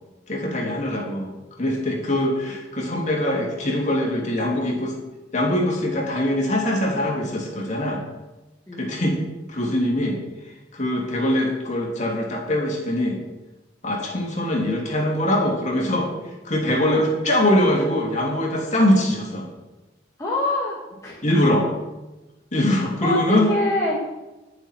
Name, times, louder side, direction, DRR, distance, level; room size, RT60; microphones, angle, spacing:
voice 1, 0.3-1.3 1.6-5.0 5.3-8.0 8.8-9.2 9.5-10.2 10.7-13.2 13.8-16.1 16.4-19.5 21.2-21.7 22.5-23.5, left 1 dB, 40° left, -1 dB, 3.1 m, -22 dB
voice 2, 8.7-9.0 16.8-17.0 20.2-20.8 21.0-21.4 23.0-23.2 23.5-24.0, left 2 dB, 15° left, -5 dB, 1.8 m, -25 dB
19.0 x 7.2 x 4.6 m, 1.1 s
head